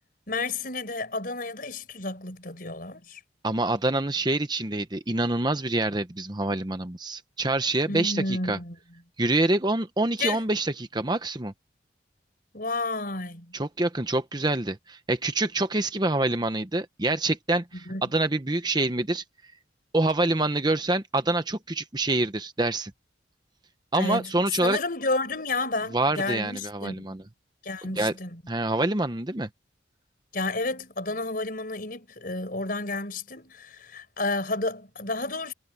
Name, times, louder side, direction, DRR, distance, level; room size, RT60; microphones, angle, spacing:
voice 1, 0.3-3.2 7.9-8.8 10.2-10.4 12.5-13.5 17.7-18.1 23.9-24.3 24.6-27.1 27.6-28.4 30.3-35.5, left 2 dB, 50° left, 5.2 m, -31 dB
voice 2, 3.4-8.6 9.2-11.5 13.5-19.2 19.9-22.9 23.9-24.8 25.9-27.2 28.0-28.1 28.5-29.5, right 2 dB, 25° right, 0.9 m, -26 dB
head